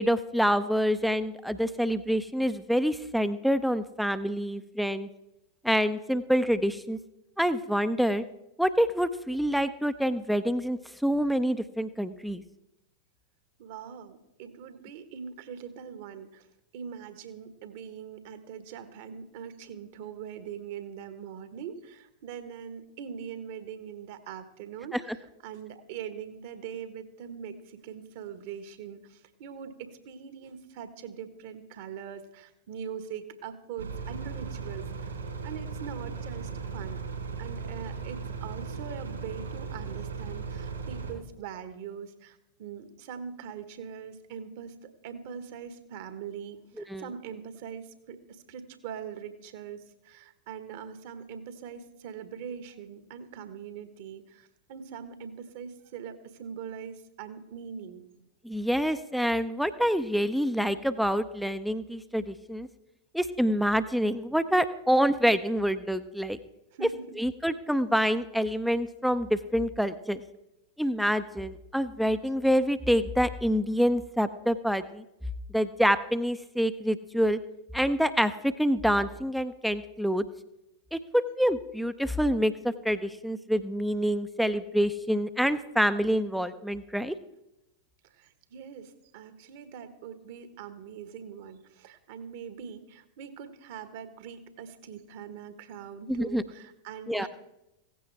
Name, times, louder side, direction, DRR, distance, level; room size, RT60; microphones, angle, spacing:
voice 1, 0.0-5.1 5.6-7.0 7.4-8.2 8.6-12.4 24.9-25.0 46.9-47.1 58.4-62.7 63.1-66.4 67.2-70.2 70.8-75.0 75.5-77.4 77.7-80.2 80.9-87.1 96.1-96.4 97.1-97.3, equal, ahead, 12 dB, 0.6 m, -27 dB
voice 2, 13.6-16.5 16.7-35.2 35.4-37.0 37.4-58.0 66.7-67.1 88.0-97.3, right 7 dB, 50° right, 10 dB, 1.4 m, -42 dB
sound 1, 33.8-41.1, right 5 dB, 70° right, 3.8 m, -37 dB
16.5 x 15.5 x 3.4 m, 0.90 s
figure-of-eight pair, 90°, 0 cm